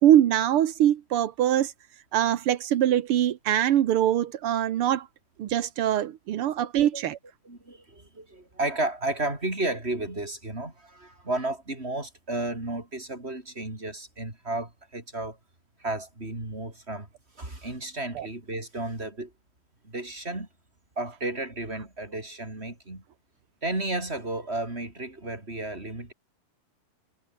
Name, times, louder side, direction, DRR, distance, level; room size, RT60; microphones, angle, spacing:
voice 1, 0.0-1.7 2.1-5.1 5.4-7.2 18.1-18.3, right 11 dB, 75° right, 1.3 m, -23 dB
voice 2, 6.6-7.0 7.4-15.4 15.8-17.1 17.4-19.3 19.8-20.5 21.0-23.0 23.6-26.1, right 2 dB, 15° right, 5.6 m, -33 dB
omnidirectional pair, 4.0 m